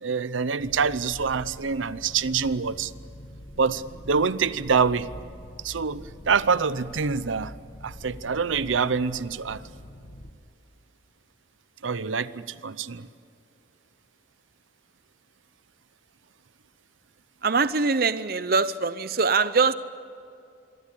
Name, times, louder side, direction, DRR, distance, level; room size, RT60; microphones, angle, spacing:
voice 1, 0.0-2.9 3.6-5.1 5.6-7.5 7.8-9.6 11.8-13.1, right 5 dB, 85° right, 16 dB, 0.7 m, -26 dB
sound 1, 0.6-10.3, left 1 dB, 50° left, 1.7 m, -45 dB
voice 2, 17.4-19.7, right 4 dB, 50° right, 14 dB, 0.7 m, -23 dB
26.5 x 23.0 x 8.5 m, 2.4 s
head